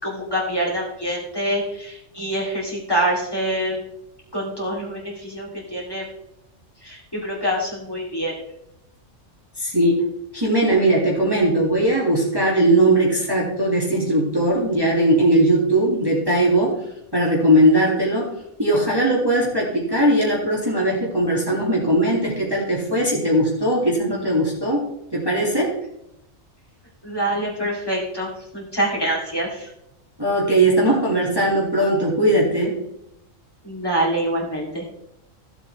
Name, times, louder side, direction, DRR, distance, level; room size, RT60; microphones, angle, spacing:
voice 1, 0.0-3.8 4.3-6.1 6.8-8.3 27.0-28.3 28.5-29.7 33.6-34.8, right 1 dB, 15° left, -5 dB, 2.9 m, -25 dB
voice 2, 9.6-10.0 10.3-16.8 17.1-18.3 18.6-25.7 30.2-32.8, right 1 dB, 15° right, -4 dB, 2.1 m, -19 dB
15.0 x 7.8 x 3.3 m, 0.82 s
omnidirectional pair, 1.4 m